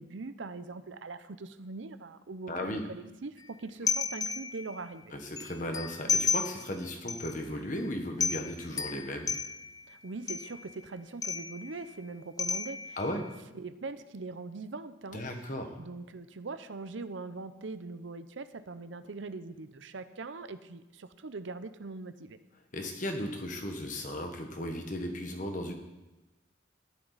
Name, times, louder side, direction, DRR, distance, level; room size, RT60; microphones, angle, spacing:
voice 1, 0.0-5.1 9.9-13.0 13.5-15.2 15.8-22.4, right 3 dB, 75° right, 12 dB, 0.7 m, -42 dB
voice 2, 2.5-2.8 5.1-9.3 13.0-13.3 15.1-15.8 22.7-25.7, left 1 dB, 40° left, 4 dB, 1.4 m, -36 dB
sound 1, 3.9-4.8 5.4-6.8 7.1-7.4 7.8-7.9 8.2-9.8 10.3-10.7 11.2-11.8 12.4-13.2, left 5 dB, 20° left, 0.3 m, -32 dB
13.5 x 11.0 x 4.1 m, 1.0 s
head